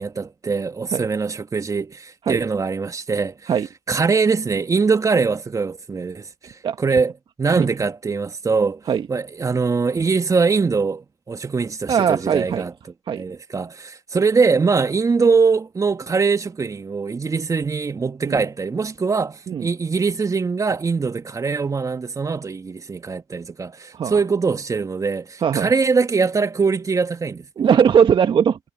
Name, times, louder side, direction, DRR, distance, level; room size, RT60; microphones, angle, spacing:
voice 1, 0.0-3.5 3.9-7.1 7.4-8.8 9.1-12.7 13.2-27.5, right 4 dB, 30° right, 2.5 m, -22 dB
voice 2, 11.9-12.7 13.1-13.2 18.3-18.4 19.5-19.7 23.9-24.2 25.4-25.7 27.6-28.6, right 7 dB, 45° right, 1.8 m, -19 dB
hypercardioid pair, 60°, 11 cm